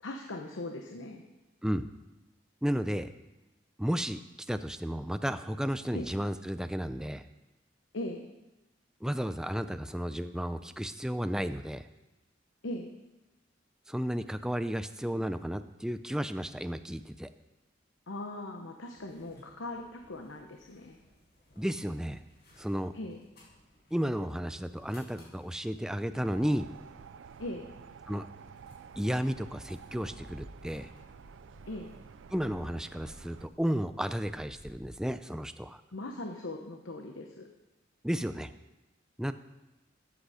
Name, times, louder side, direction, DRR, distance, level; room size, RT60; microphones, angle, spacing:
voice 1, 0.0-1.2 5.9-6.1 7.9-8.2 12.6-12.9 18.1-21.0 22.9-23.2 27.4-27.6 31.7-31.9 35.9-37.5, left 1 dB, 80° left, 4 dB, 0.9 m, -39 dB
voice 2, 2.6-3.1 3.8-4.2 4.5-7.2 9.0-11.9 13.9-17.3 21.6-22.2 22.6-22.9 23.9-26.7 28.1-28.3 29.0-30.9 32.3-35.8 38.0-38.5 39.2-39.3, equal, 5° right, 11 dB, 0.4 m, -33 dB
sound 1, 18.8-34.9, equal, 60° left, 4.8 m, -58 dB
sound 2, 26.2-33.5, right 6 dB, 75° right, 0.4 m, -51 dB
14.0 x 8.0 x 5.0 m, 1.0 s
head